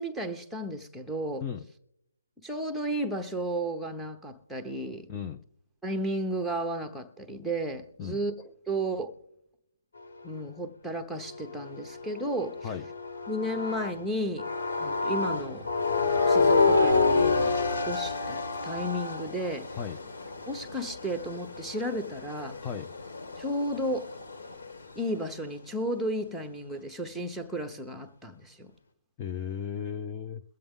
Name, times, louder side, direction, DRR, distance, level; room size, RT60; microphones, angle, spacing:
voice 1, 0.0-1.4 2.4-5.1 5.8-9.1 10.2-12.7 13.3-14.4 14.8-15.7 16.1-18.4 18.6-19.7 20.5-22.6 23.4-24.1 25.0-28.7, right 1 dB, ahead, 0.9 m, -33 dB
sound 1, 11.1-14.0 14.4-24.8, left 3 dB, 65° left, 1.9 m, -29 dB
voice 2, 22.6-22.9 29.2-30.4, left 7 dB, 15° left, 0.6 m, -35 dB
22.5 x 7.7 x 3.7 m
hypercardioid pair, 160°, 0 cm